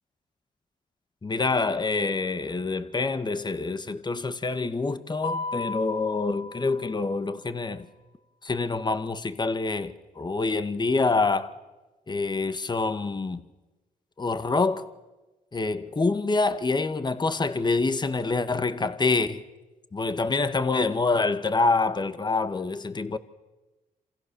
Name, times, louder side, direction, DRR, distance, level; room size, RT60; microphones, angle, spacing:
voice 1, 1.2-7.9 8.4-11.5 12.1-13.4 14.2-14.8 15.5-19.4 19.9-23.2, left 3 dB, 30° left, 1.6 m, -26 dB
Mallet percussion, 5.2-7.3, left 3 dB, 80° left, 3.2 m, -35 dB
28.5 x 27.5 x 7.0 m
cardioid pair, 60°, 15 cm